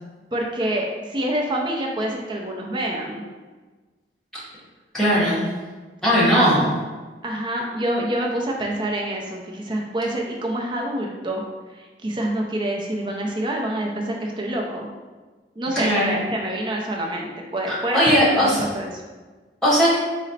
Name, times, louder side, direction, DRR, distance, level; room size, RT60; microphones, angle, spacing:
voice 1, 0.3-3.3 7.2-11.4 11.7-14.9 15.6-19.0, right 1 dB, 25° right, 0 dB, 0.5 m, -27 dB
voice 2, 4.9-5.4 6.0-6.7 15.7-16.2 17.9-18.6 19.6-19.9, equal, 5° left, -9 dB, 1.1 m, -18 dB
4.0 x 2.1 x 4.0 m, 1.3 s
head